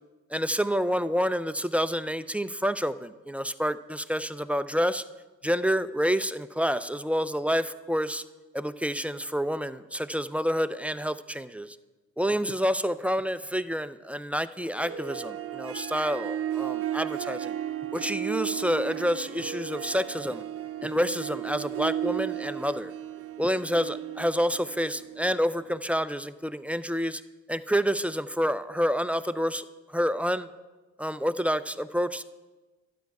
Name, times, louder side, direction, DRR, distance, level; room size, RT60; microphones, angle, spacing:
voice 1, 0.3-5.0 5.4-8.2 8.5-11.8 12.2-17.5 17.9-20.4 20.8-22.9 23.4-27.2 27.5-29.6 29.9-30.5 31.0-32.2, equal, 5° right, 12 dB, 0.3 m, -28 dB
Harp, 14.6-25.8, right 11 dB, 50° right, 0.7 m, -35 dB
11.5 x 9.3 x 4.7 m, 1.2 s
cardioid pair, 90°, 30 cm